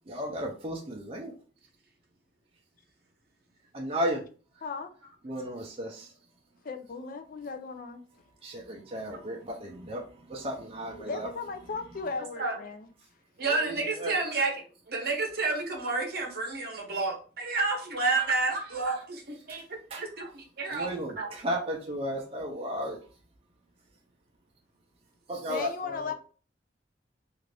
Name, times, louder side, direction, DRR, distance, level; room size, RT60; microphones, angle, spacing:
voice 1, 0.1-1.3 3.7-4.2 5.2-6.1 8.4-10.0 10.3-11.3 13.5-14.2 19.9-20.0 20.7-23.0 25.3-26.1, equal, 30° right, 0.5 m, -34 dB
voice 2, 6.6-8.0 11.0-12.9 25.5-26.1, left 4 dB, 50° left, 0.4 m, -36 dB
voice 3, 13.4-20.9 21.2-21.3, right 3 dB, 55° right, 0.8 m, -30 dB
2.5 x 2.5 x 3.2 m
head